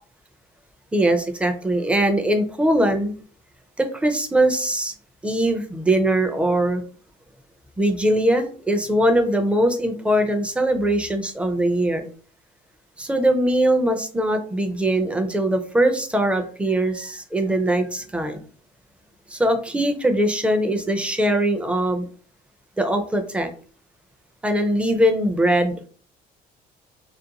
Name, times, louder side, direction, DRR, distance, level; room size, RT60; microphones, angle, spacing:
voice 1, 0.9-3.1 3.8-4.9 5.2-6.8 7.8-12.1 13.0-18.4 19.3-22.0 22.8-23.5 24.4-25.9, right 1 dB, 5° right, 6 dB, 0.4 m, -21 dB
2.5 x 2.1 x 2.8 m, 0.42 s
cardioid pair, 110°, 17 cm